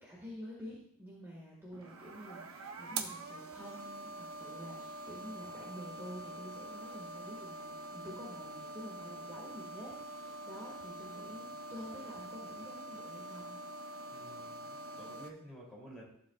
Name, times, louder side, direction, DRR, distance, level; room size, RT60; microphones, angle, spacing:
voice 1, 0.0-13.6, equal, 10° right, -5 dB, 1.9 m, -49 dB
sound 1, 1.7-15.3, right 2 dB, 75° right, 1.0 m, -45 dB
voice 2, 14.1-16.1, right 1 dB, 5° left, -5 dB, 3.2 m, -52 dB
14.0 x 7.5 x 2.4 m, 0.66 s
head